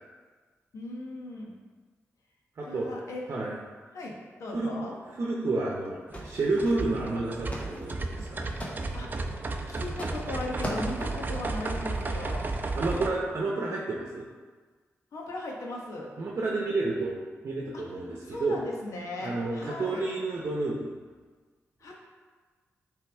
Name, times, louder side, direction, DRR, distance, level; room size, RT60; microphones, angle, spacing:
voice 1, 0.7-1.6 2.7-3.2 3.9-4.9 8.9-9.3 9.7-12.5 15.1-16.1 17.7-17.8 18.2-20.1 21.8-21.9, left 2 dB, 85° left, -2 dB, 1.2 m, -38 dB
voice 2, 2.6-2.9 3.3-3.6 4.5-4.7 5.1-8.4 12.7-14.2 16.2-17.1 17.4-18.6 19.2-20.9, right 3 dB, 60° right, -3 dB, 0.8 m, -30 dB
sound 1, 5.8-5.9 6.1-7.1 7.3-7.9 8.2-9.1 9.9-10.3 10.6-11.2, equal, 25° left, 1.0 m, -39 dB
sound 2, 6.1-13.1, right 3 dB, 35° right, 0.5 m, -33 dB
8.2 x 3.5 x 3.5 m, 1.5 s
wide cardioid pair, 95°, 5 cm